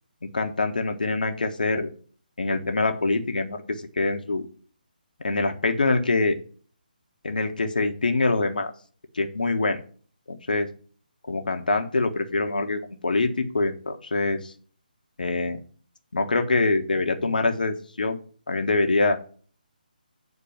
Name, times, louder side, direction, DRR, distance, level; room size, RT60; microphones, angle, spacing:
voice 1, 0.2-1.9 2.4-4.4 5.2-6.4 7.2-8.7 9.1-9.8 10.3-10.7 11.3-14.5 15.2-15.6 16.1-18.2 18.5-19.2, left 3 dB, 65° left, 5 dB, 1.3 m, -24 dB
8.6 x 4.4 x 5.8 m, 0.43 s
figure-of-eight pair, 145°, 5 cm